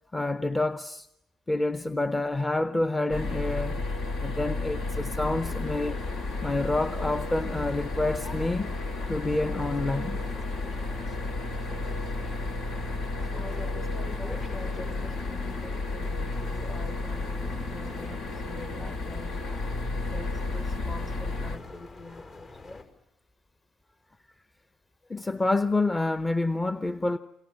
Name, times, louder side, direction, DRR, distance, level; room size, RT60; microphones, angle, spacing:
voice 1, 0.1-1.1 1.5-3.8 4.2-6.0 6.4-8.8 9.1-10.2 25.1-27.2, left 2 dB, 20° left, 0.9 m, -28 dB
sound 1, 3.1-21.6, left 2 dB, 70° left, 2.7 m, -32 dB
sound 2, 5.4-22.8, left 3 dB, 50° left, 5.3 m, -46 dB
voice 2, 13.4-19.4 20.0-22.8, left 2 dB, 35° left, 2.0 m, -44 dB
28.5 x 24.5 x 7.7 m
hypercardioid pair, 50°, 0 cm